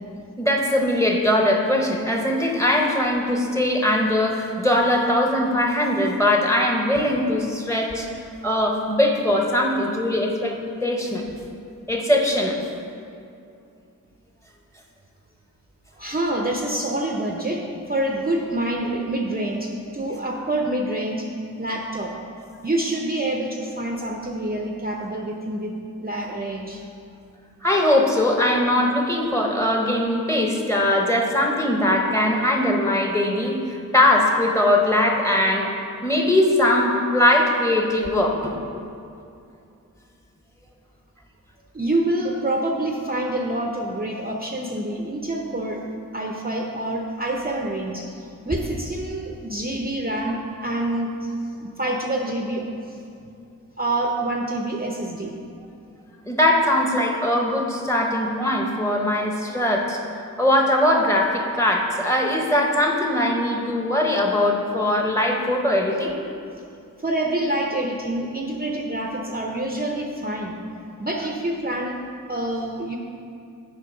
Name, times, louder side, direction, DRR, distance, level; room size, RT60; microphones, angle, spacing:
voice 1, 0.4-8.1 8.4-11.3 11.9-12.6 27.6-35.7 36.0-38.5 56.3-60.0 60.4-66.2, left 1 dB, 10° left, 1 dB, 1.0 m, -21 dB
voice 2, 16.0-17.6 17.9-21.3 21.6-22.1 22.6-25.7 26.0-26.8 41.7-45.8 46.1-51.3 51.6-53.0 53.8-55.3 67.0-70.6 71.0-71.9 72.3-73.0, right 1 dB, 25° right, 1 dB, 0.6 m, -26 dB
8.4 x 5.1 x 5.2 m, 2.5 s
wide cardioid pair, 80°, 34 cm